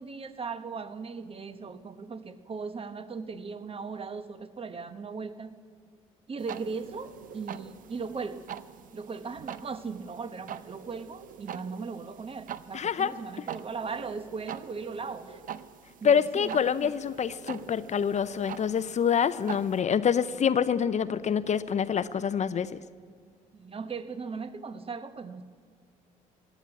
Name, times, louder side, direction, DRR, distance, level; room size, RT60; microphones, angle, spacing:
voice 1, 0.0-5.5 6.3-8.5 8.9-15.4 16.0-16.9 23.5-25.4, right 5 dB, 35° right, 11 dB, 1.1 m, -38 dB
sound 1, 6.4-19.8, right 9 dB, 55° right, 0.6 m, -45 dB
sound 2, 6.5-22.8, right 6 dB, 80° right, 1.2 m, -52 dB
voice 2, 12.7-13.1 16.0-22.7, left 7 dB, 45° left, 15 dB, 0.6 m, -26 dB
17.0 x 10.0 x 8.3 m, 2.1 s
supercardioid pair, 60°, 17 cm